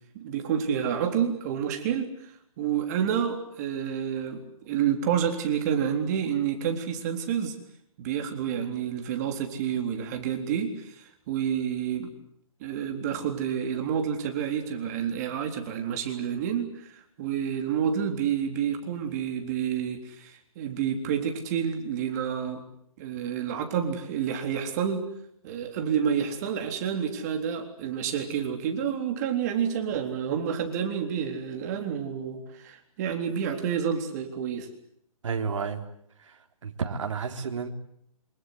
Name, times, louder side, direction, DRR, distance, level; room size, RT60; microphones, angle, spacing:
voice 1, 0.1-2.3 2.6-7.6 8.0-12.1 12.6-22.6 23.0-25.1 25.4-34.7, right 8 dB, 30° right, 5 dB, 3.7 m, -29 dB
voice 2, 35.2-35.8 36.3-36.4 36.6-37.7, right 5 dB, 55° right, 5 dB, 3.9 m, -31 dB
27.0 x 25.5 x 8.0 m, 0.72 s
hypercardioid pair, 160°, 18 cm